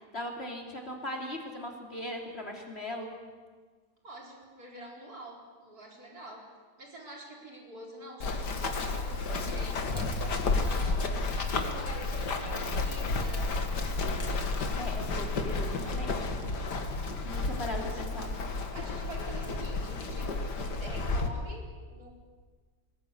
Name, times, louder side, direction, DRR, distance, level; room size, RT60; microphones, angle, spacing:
voice 1, 0.1-3.2 14.8-16.3 17.2-18.4, left 1 dB, 40° left, 2 dB, 3.3 m, -38 dB
voice 2, 4.0-6.5 6.8-13.6 18.7-22.1, right 1 dB, 65° right, 0 dB, 4.9 m, -46 dB
Run, 8.2-21.3, left 3 dB, 85° left, 2.4 m, -31 dB
21.0 x 20.0 x 9.8 m, 1.4 s
omnidirectional pair, 1.7 m